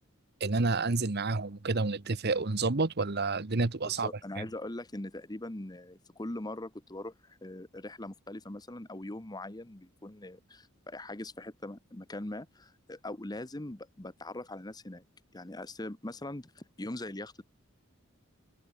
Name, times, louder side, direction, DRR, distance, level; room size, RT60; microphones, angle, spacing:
voice 1, 0.4-4.1 4.4-4.5, right 3 dB, 50° right, 1.1 m, -29 dB
voice 2, 3.8-15.1 15.3-17.4, left 1 dB, 20° left, 1.1 m, -41 dB
head